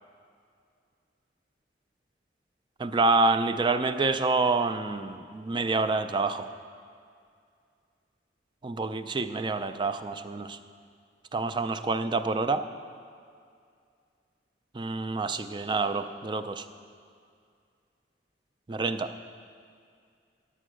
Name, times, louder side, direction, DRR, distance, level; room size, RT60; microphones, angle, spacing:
voice 1, 2.8-6.5 8.6-10.6 11.3-12.6 14.7-16.7 18.7-19.1, right 3 dB, 25° right, 10 dB, 0.4 m, -27 dB
10.0 x 8.7 x 6.2 m, 2.3 s
head